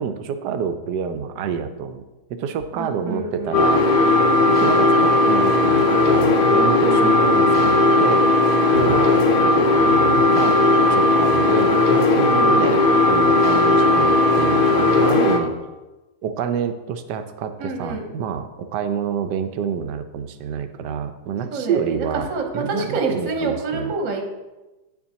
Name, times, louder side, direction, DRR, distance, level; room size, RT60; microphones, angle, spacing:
voice 1, 0.0-2.0 2.3-3.9 4.5-8.3 8.7-10.6 10.9-15.5 16.2-22.3 22.5-23.9, right 7 dB, 75° right, 9 dB, 1.2 m, -28 dB
voice 2, 2.7-3.6 6.8-7.3 12.3-12.7 17.6-18.0 21.5-24.3, right 3 dB, 50° right, 2 dB, 1.3 m, -27 dB
sound 1, 3.5-15.4, left 2 dB, 65° left, 0.5 m, -16 dB
9.3 x 7.0 x 2.8 m, 1.1 s
omnidirectional pair, 1.9 m